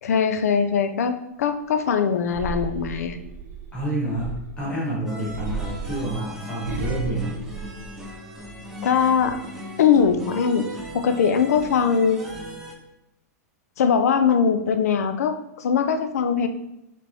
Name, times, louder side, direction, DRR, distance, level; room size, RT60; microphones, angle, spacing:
voice 1, 0.0-3.2 8.8-9.4 9.8-10.7 10.9-12.2 13.8-16.5, left 6 dB, 65° left, 9 dB, 0.5 m, -21 dB
sound 1, 2.3-4.7 5.3-8.4 8.8-9.3, right 3 dB, 70° right, 0.6 m, -34 dB
voice 2, 3.7-7.3, right 1 dB, 10° left, -7 dB, 1.2 m, -28 dB
sound 2, 5.1-12.7, equal, 5° right, 0.3 m, -38 dB
5.1 x 3.4 x 2.8 m, 0.86 s
supercardioid pair, 180°, 9 cm